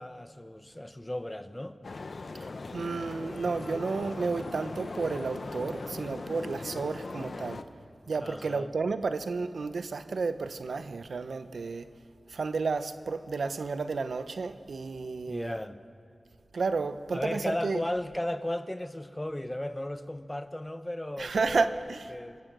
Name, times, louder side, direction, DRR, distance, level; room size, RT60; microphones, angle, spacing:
voice 1, 0.0-1.8 8.2-8.7 15.3-15.8 17.1-22.4, left 1 dB, 15° left, 0.8 m, -35 dB
sound 1, 1.8-7.6, left 3 dB, 55° left, 0.8 m, -39 dB
voice 2, 2.4-7.6 8.1-11.9 12.3-15.6 16.5-17.8 21.2-22.1, right 4 dB, 85° right, 0.8 m, -32 dB
28.0 x 16.0 x 6.2 m
wide cardioid pair, 95°, 0 cm